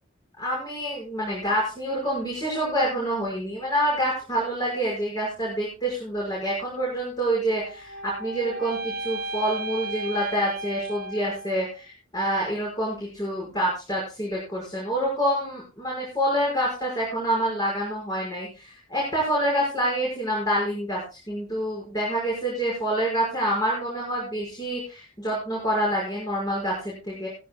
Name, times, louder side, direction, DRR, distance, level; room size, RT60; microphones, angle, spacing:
voice 1, 0.4-21.0 21.3-27.3, right 1 dB, 20° left, -4 dB, 5.4 m, -27 dB
sound 1, 7.5-11.8, right 1 dB, 50° right, 1.3 m, -35 dB
17.5 x 14.5 x 2.2 m, 0.31 s
head